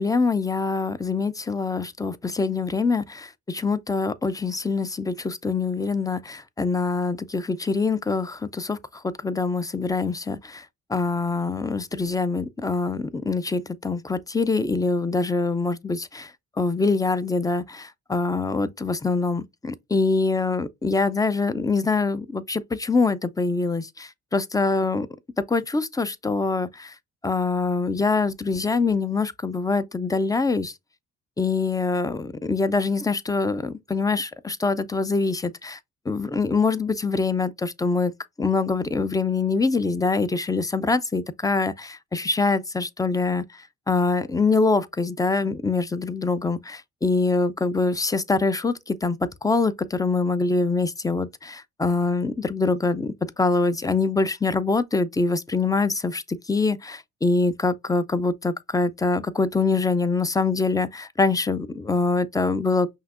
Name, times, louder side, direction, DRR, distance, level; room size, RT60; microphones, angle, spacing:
voice 1, 0.0-10.6 10.9-16.3 16.6-25.1 25.5-26.9 27.2-30.7 31.4-35.8 36.1-38.1 38.4-43.4 43.9-62.9, left 3 dB, 10° left, 0.4 m, -24 dB
5.7 x 2.7 x 2.4 m
cardioid pair, 90°, 30 cm